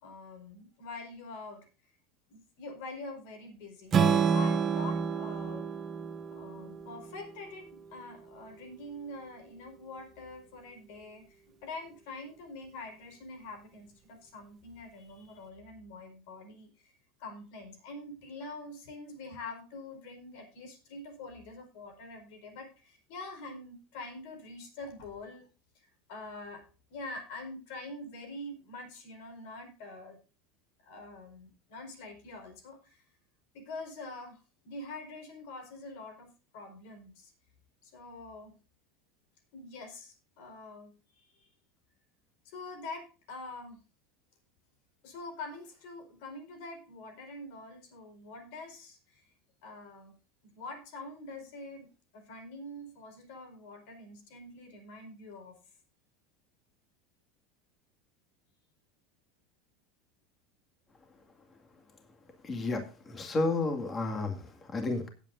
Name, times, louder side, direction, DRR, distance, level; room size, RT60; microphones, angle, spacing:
voice 1, 0.0-1.9 2.3-5.7 6.3-16.9 17.2-25.5 25.7-26.6 26.9-30.2 30.8-33.0 33.5-37.3 37.8-38.6 39.5-41.5 42.4-43.8 45.0-49.3 49.6-50.1 50.4-55.7, left 2 dB, 65° left, 6 dB, 4.7 m, -45 dB
Strum, 3.9-8.1, right 6 dB, 25° right, 1.0 m, -29 dB
voice 2, 62.4-65.1, left 3 dB, 20° left, 5 dB, 2.1 m, -32 dB
17.5 x 8.3 x 2.6 m, 0.35 s
supercardioid pair, 145°, 0 cm